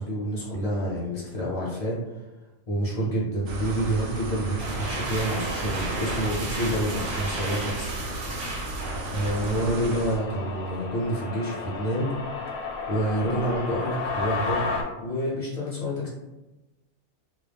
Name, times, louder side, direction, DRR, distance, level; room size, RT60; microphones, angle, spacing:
voice 1, 0.0-2.0 2.7-7.9 9.1-12.1 12.9-14.6 15.0-16.1, right 1 dB, 35° left, -6 dB, 0.6 m, -28 dB
sound 1, 3.5-10.2, right 2 dB, 85° right, 1.0 m, -34 dB
sound 2, 4.4-10.1, right 1 dB, 65° right, 0.7 m, -34 dB
sound 3, 9.0-14.8, left 4 dB, 90° left, 1.0 m, -33 dB
2.3 x 2.0 x 3.3 m, 1.0 s
omnidirectional pair, 1.4 m